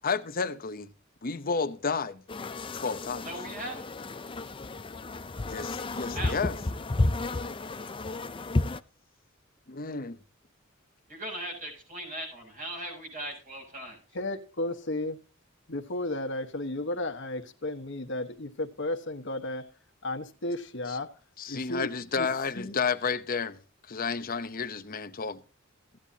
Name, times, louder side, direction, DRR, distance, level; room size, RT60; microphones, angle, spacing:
voice 1, 0.0-0.9 1.2-2.2 2.7-3.3 5.4-6.6 9.7-10.2 20.9-21.0 21.4-23.6 23.9-25.4, left 5 dB, 45° left, 0.9 m, -31 dB
sound 1, 2.3-8.8, left 2 dB, 25° left, 0.5 m, -32 dB
voice 2, 3.2-3.8 6.1-6.4 11.1-14.0, right 1 dB, 40° right, 7.0 m, -38 dB
voice 3, 14.1-15.2 15.7-19.6 20.0-21.1 21.5-22.8, left 1 dB, 65° left, 1.4 m, -34 dB
15.5 x 10.0 x 2.8 m
head